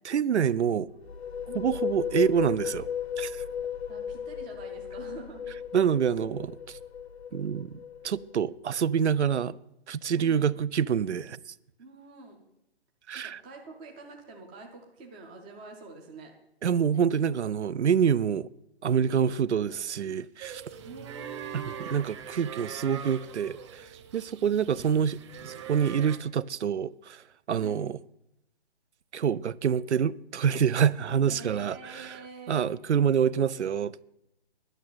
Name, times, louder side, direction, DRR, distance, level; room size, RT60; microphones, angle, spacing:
voice 1, 0.0-0.9 1.5-2.9 3.2-3.4 5.7-6.8 7.3-9.6 9.9-11.4 13.1-13.4 16.6-18.5 18.8-20.6 21.5-21.6 21.9-25.2 25.4-27.2 27.5-28.0 29.1-32.2 32.5-34.0, right 8 dB, 90° right, 0.6 m, -26 dB
sound 1, 0.9-8.5, left 8 dB, 70° left, 1.0 m, -35 dB
voice 2, 1.5-2.0 3.9-5.4 10.1-10.7 11.8-12.4 13.1-16.3 20.8-22.0 27.6-27.8 31.3-32.7, right 4 dB, 5° right, 0.5 m, -46 dB
sound 2, 20.4-26.2, right 8 dB, 25° right, 1.0 m, -42 dB
11.0 x 6.5 x 8.9 m
hypercardioid pair, 150°, 33 cm